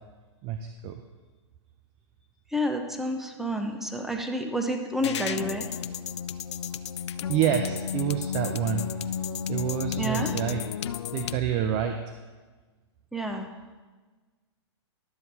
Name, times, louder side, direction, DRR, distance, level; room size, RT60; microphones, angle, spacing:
voice 1, 0.4-1.0 7.3-9.2 9.5-10.6 11.1-12.2, right 9 dB, 35° right, 6 dB, 0.7 m, -28 dB
voice 2, 2.5-5.7 10.0-10.3 13.1-13.5, equal, ahead, 4 dB, 0.9 m, -29 dB
sound 1, 5.0-11.4, left 8 dB, 75° left, 0.4 m, -32 dB
11.5 x 7.5 x 4.1 m, 1.3 s
hypercardioid pair, 120°, 15 cm